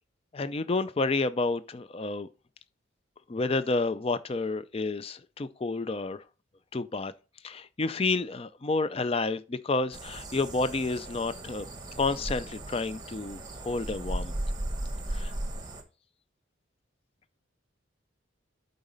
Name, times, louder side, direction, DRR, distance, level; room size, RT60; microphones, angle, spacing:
voice 1, 0.3-2.3 3.3-6.2 6.7-7.1 7.4-11.6 12.0-14.3 15.1-15.3, left 3 dB, 30° left, 0.4 m, -30 dB
sound 1, 9.9-15.8, right 1 dB, 20° right, 1.1 m, -36 dB
8.8 x 4.0 x 5.3 m
head